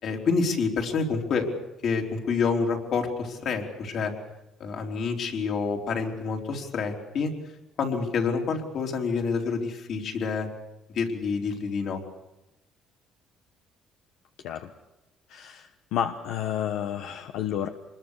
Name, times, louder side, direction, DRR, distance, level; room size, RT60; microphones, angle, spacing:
voice 1, 0.0-1.5 1.8-4.1 4.6-7.3 7.8-10.5 10.9-12.0, left 5 dB, 55° left, 2 dB, 3.9 m, -28 dB
voice 2, 15.3-17.7, left 10 dB, 85° left, 6 dB, 1.2 m, -30 dB
26.0 x 21.5 x 6.6 m, 0.93 s
cardioid pair, 120°, 0 cm